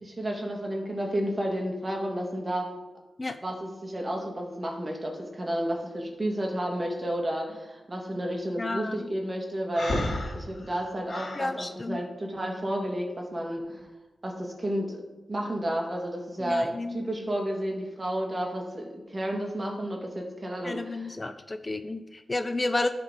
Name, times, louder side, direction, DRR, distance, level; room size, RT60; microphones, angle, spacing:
voice 1, 0.0-2.7 3.4-10.0 10.3-13.9 14.2-15.0 15.3-21.1, equal, 35° right, 0 dB, 2.1 m, -31 dB
voice 2, 8.6-9.1 11.4-12.0 16.4-17.0 20.6-22.9, left 2 dB, 35° left, 9 dB, 0.5 m, -31 dB
Breathing, 9.7-11.5, left 1 dB, 65° left, 2.0 m, -32 dB
11.5 x 4.4 x 4.2 m, 1.1 s
cardioid pair, 50°, 0 cm